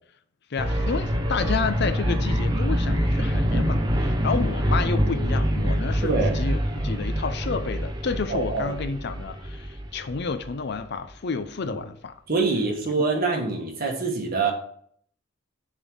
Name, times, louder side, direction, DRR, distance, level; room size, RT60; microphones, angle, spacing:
voice 1, 0.5-12.2, left 4 dB, 60° left, 10 dB, 0.6 m, -30 dB
sound 1, 0.6-10.5, equal, 20° right, 0.8 m, -25 dB
voice 2, 6.0-6.4 8.3-8.8 11.7-11.8 12.3-14.5, right 3 dB, 50° right, 1 dB, 1.6 m, -25 dB
7.0 x 3.7 x 6.3 m, 0.62 s
head